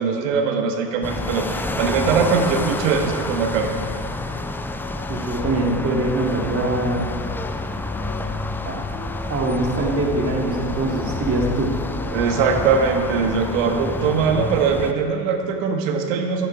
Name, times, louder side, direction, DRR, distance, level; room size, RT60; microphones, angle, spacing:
voice 1, 0.0-3.8 12.1-16.5, right 5 dB, 70° right, 5 dB, 1.4 m, -21 dB
sound 1, 1.0-14.9, left 2 dB, 5° left, 0.3 m, -29 dB
sound 2, 1.6-13.3, left 3 dB, 25° left, 1.5 m, -39 dB
voice 2, 5.1-7.1 8.6-8.8 9.3-11.7, right 2 dB, 35° right, 0 dB, 2.1 m, -23 dB
11.5 x 9.6 x 4.8 m, 2.5 s
hypercardioid pair, 85°, 39 cm